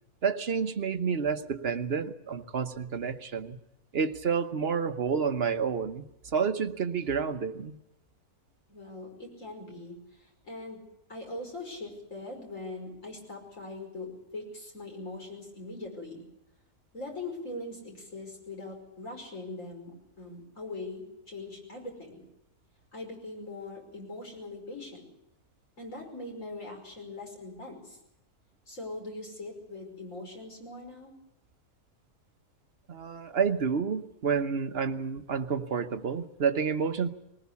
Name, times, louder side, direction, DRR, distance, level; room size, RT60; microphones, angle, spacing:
voice 1, 0.2-3.6 3.9-7.8 32.9-37.1, right 6 dB, 45° right, 9 dB, 1.2 m, -29 dB
voice 2, 8.7-10.8 11.1-16.2 16.9-22.2 22.9-25.1 25.8-28.0 28.7-31.1, left 2 dB, 55° left, 1 dB, 5.8 m, -41 dB
20.5 x 19.5 x 8.4 m, 0.85 s
omnidirectional pair, 1.6 m